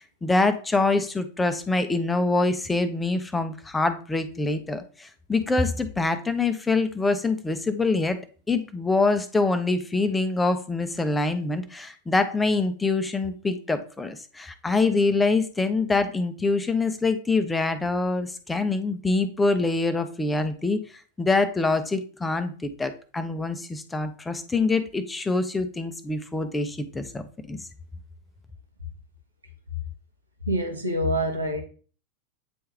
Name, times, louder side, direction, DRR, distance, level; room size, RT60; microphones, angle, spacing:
voice 1, 0.0-8.2 8.5-20.8 21.2-27.2 27.5-27.6, left 3 dB, 10° left, 0.7 m, -25 dB
voice 2, 30.5-31.6, equal, 80° right, 1.3 m, -25 dB
8.7 x 3.4 x 3.3 m
figure-of-eight pair, 90°, 0 cm